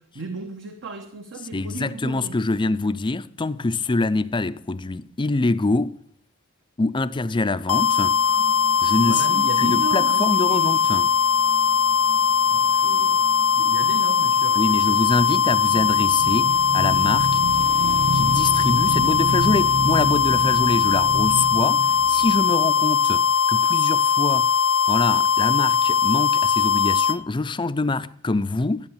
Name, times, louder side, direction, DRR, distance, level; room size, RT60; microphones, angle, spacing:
voice 1, 0.0-2.4 9.0-11.1 12.5-13.3 13.5-15.0, right 3 dB, 60° right, 1.1 m, -35 dB
voice 2, 1.5-6.0 6.8-8.2 8.8-11.1 14.6-17.4 18.1-24.5 24.9-28.9, left 3 dB, 20° left, 0.5 m, -25 dB
sound 1, 7.7-27.2, left 6 dB, 80° left, 0.7 m, -20 dB
sound 2, 7.7-14.9, right 4 dB, 85° right, 7.8 m, -43 dB
Motorcycle / Engine, 15.0-23.3, right 2 dB, 25° right, 0.5 m, -30 dB
13.0 x 8.9 x 7.3 m
head